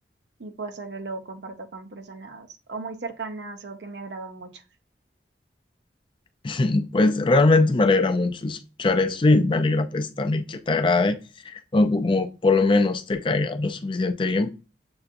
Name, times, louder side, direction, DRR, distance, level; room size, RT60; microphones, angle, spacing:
voice 1, 0.4-4.6, right 3 dB, 75° right, 0.6 m, -37 dB
voice 2, 6.4-11.2 11.5-14.6, left 3 dB, 30° left, 0.4 m, -21 dB
6.8 x 2.6 x 2.5 m
head